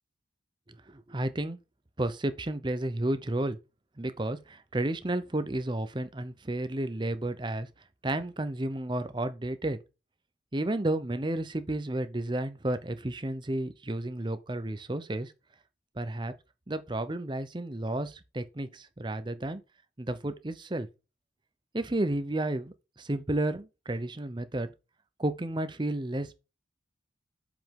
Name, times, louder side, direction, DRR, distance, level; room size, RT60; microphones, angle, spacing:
voice 1, 0.9-1.6 2.0-3.6 4.0-7.7 8.0-9.8 10.5-15.3 16.0-16.3 16.7-19.6 20.0-20.9 21.7-24.7 25.2-26.5, right 1 dB, 25° right, 0.7 m, -32 dB
7.7 x 5.2 x 3.7 m
head